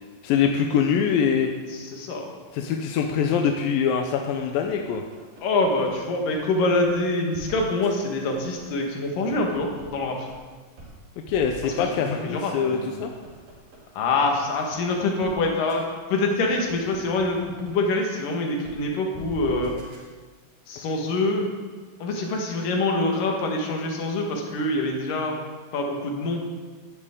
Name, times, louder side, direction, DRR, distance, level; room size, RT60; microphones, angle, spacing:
voice 1, 0.2-1.5 2.5-5.0 11.3-13.1, left 7 dB, 90° left, 4 dB, 2.5 m, -23 dB
voice 2, 1.7-2.4 5.4-10.3 11.6-11.9 12.3-12.9 13.9-19.7 20.7-21.5 22.0-25.3 25.7-26.4, left 2 dB, 70° left, 1 dB, 3.2 m, -25 dB
sound 1, 4.4-5.9 6.4-6.5 6.8-6.9 7.3-7.5 7.8-7.9 8.3-9.8 10.3-10.4 10.8-10.9 11.3-13.8 14.2-14.3 14.7-14.8 15.2-15.3 15.7-15.8 16.2-17.7 18.2-18.3 18.6-18.7 19.1-20.0, right 1 dB, 75° right, 5.3 m, -42 dB
13.5 x 11.0 x 3.8 m, 1.4 s
omnidirectional pair, 4.0 m